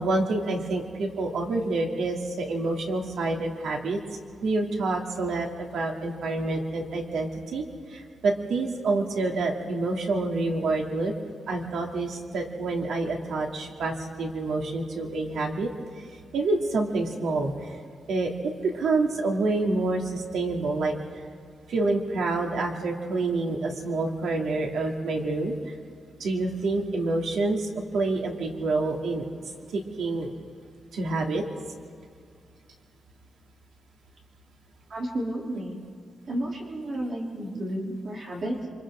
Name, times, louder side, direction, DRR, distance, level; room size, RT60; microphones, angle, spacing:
voice 1, 0.0-11.1 11.5-15.7 16.3-17.5 18.1-18.3 18.6-20.9 21.7-25.5 26.2-29.3 29.7-30.3 30.9-31.4 37.5-37.6, right 3 dB, 85° right, 1 dB, 2.6 m, -27 dB
voice 2, 34.9-35.8 36.3-38.7, right 1 dB, 40° right, -2 dB, 3.2 m, -32 dB
28.0 x 25.0 x 3.8 m, 2.1 s
wide cardioid pair, 170°, 0 cm